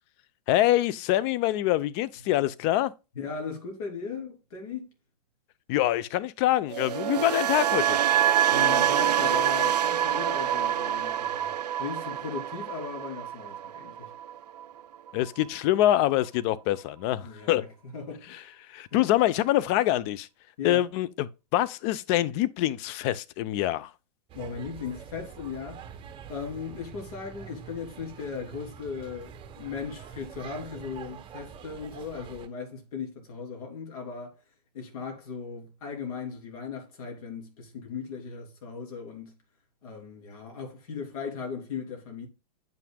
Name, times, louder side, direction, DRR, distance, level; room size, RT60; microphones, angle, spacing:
voice 1, 0.5-2.9 5.7-8.0 15.1-17.6 18.7-20.3 20.6-23.9, left 14 dB, 40° left, 0.6 m, -25 dB
voice 2, 3.1-4.9 8.5-11.5 11.8-14.1 17.2-17.7 17.9-18.5 18.9-19.0 20.6-20.9 24.3-25.8 26.3-34.4 34.7-39.4 39.8-42.3, left 5 dB, 60° left, 3.2 m, -37 dB
sound 1, 6.7-14.8 15.1-15.4, right 10 dB, 75° right, 0.4 m, -26 dB
Ferry engine room, 24.3-32.5, right 7 dB, 25° right, 1.0 m, -45 dB
9.1 x 5.8 x 2.2 m
hypercardioid pair, 110°, 21 cm